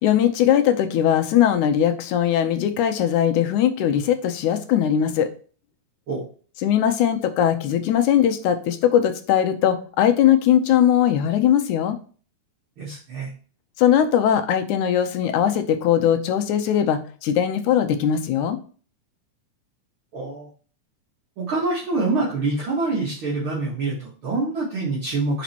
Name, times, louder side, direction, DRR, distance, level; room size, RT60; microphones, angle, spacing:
voice 1, 0.0-5.3 6.6-12.0 13.8-18.6, left 10 dB, 80° left, 7 dB, 2.2 m, -20 dB
voice 2, 12.8-13.3 20.1-20.5 21.4-25.4, right 3 dB, 45° right, -6 dB, 2.4 m, -25 dB
5.6 x 5.1 x 4.4 m, 0.40 s
omnidirectional pair, 3.5 m